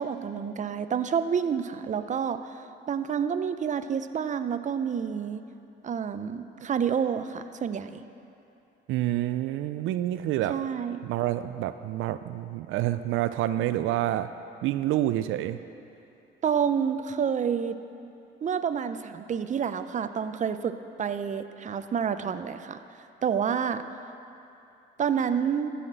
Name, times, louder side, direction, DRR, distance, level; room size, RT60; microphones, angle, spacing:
voice 1, 0.0-2.6 2.9-5.4 5.8-8.0 10.5-11.0 16.4-17.8 18.4-22.8 23.2-23.8 25.0-25.7, right 7 dB, 40° right, 10 dB, 0.6 m, -28 dB
voice 2, 8.9-10.6 11.0-14.3 14.6-15.6, right 13 dB, 85° right, 11 dB, 0.4 m, -28 dB
13.5 x 5.8 x 8.0 m, 2.8 s
cardioid pair, 90°, 20 cm